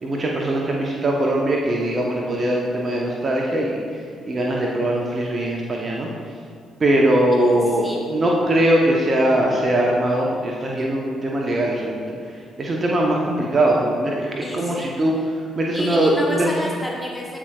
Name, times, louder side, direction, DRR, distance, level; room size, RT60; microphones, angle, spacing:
voice 1, 0.0-3.8 4.3-6.1 6.8-12.0 12.6-15.2 15.6-16.5, right 1 dB, 40° right, -1 dB, 0.9 m, -21 dB
voice 2, 7.3-8.1 14.4-15.3 15.7-17.4, equal, 10° left, -2 dB, 1.1 m, -31 dB
14.5 x 4.8 x 2.3 m, 2.3 s
figure-of-eight pair, 40°, 0 cm